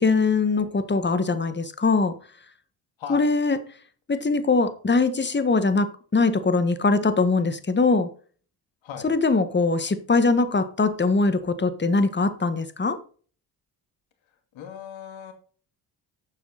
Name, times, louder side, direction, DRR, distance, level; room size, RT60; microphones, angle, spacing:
voice 1, 0.0-2.1 3.1-3.6 4.1-8.1 9.0-13.0, left 3 dB, 20° left, 11 dB, 1.6 m, -22 dB
voice 2, 3.0-3.3 8.8-9.1 14.5-15.3, left 8 dB, 65° left, 6 dB, 2.3 m, -38 dB
11.5 x 7.3 x 4.1 m, 0.42 s
hypercardioid pair, 55°, 50 cm